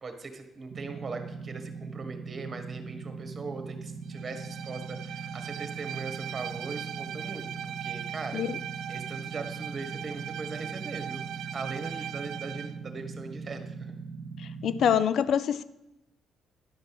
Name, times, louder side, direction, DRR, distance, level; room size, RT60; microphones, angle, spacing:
voice 1, 0.0-8.4 8.9-13.9, right 4 dB, 35° right, 7 dB, 1.7 m, -40 dB
sound 1, 0.7-15.0, right 4 dB, 60° right, 1.1 m, -41 dB
Bowed string instrument, 4.1-12.8, right 10 dB, 80° right, 0.4 m, -39 dB
voice 2, 14.4-15.6, left 8 dB, 70° left, 15 dB, 0.5 m, -26 dB
11.0 x 5.3 x 7.9 m, 0.92 s
cardioid pair, 90°, 0 cm